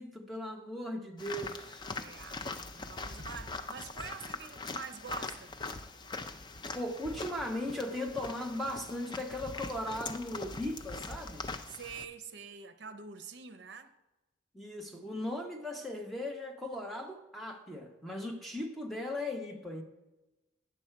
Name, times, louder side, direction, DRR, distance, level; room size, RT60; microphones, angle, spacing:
voice 1, 0.0-1.9 6.7-11.4 14.5-19.8, left 1 dB, ahead, 0.8 m, -38 dB
sound 1, 1.2-12.0, left 3 dB, 25° left, 0.4 m, -42 dB
voice 2, 1.9-5.6 11.7-14.0, right 5 dB, 60° right, 0.6 m, -46 dB
8.9 x 6.1 x 4.5 m
head